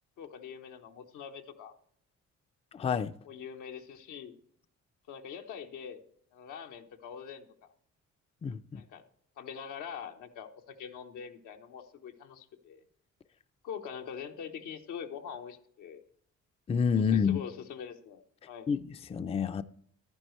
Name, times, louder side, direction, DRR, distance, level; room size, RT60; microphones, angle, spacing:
voice 1, 0.2-1.7 3.2-4.4 5.1-6.0 6.3-7.4 8.7-9.0 9.4-12.8 13.6-16.0 17.0-18.2 18.5-18.7, left 7 dB, 85° left, 1.1 m, -43 dB
voice 2, 2.7-3.1 8.4-8.8 16.7-17.4 18.7-19.6, left 6 dB, 20° left, 0.4 m, -28 dB
10.5 x 9.8 x 3.1 m
cardioid pair, 90°, 30 cm